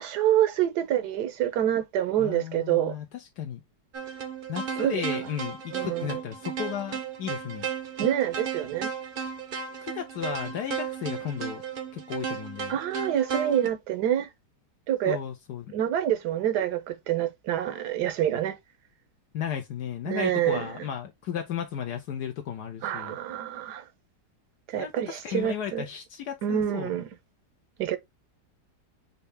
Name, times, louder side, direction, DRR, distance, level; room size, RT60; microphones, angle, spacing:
voice 1, 0.0-3.0 4.8-5.0 5.7-6.2 8.0-8.9 12.7-14.3 14.9-15.2 15.7-18.6 20.1-20.7 22.8-23.8 24.7-25.8 26.4-27.1 27.8-28.0, right 11 dB, 75° right, 1.3 m, -27 dB
voice 2, 2.2-3.6 4.5-7.7 9.8-11.6 11.9-12.8 15.1-15.7 19.3-23.2 24.7-26.9, left 9 dB, 75° left, 1.3 m, -34 dB
sound 1, 3.9-13.7, right 7 dB, 50° right, 0.6 m, -34 dB
5.5 x 2.8 x 3.4 m
omnidirectional pair, 1.8 m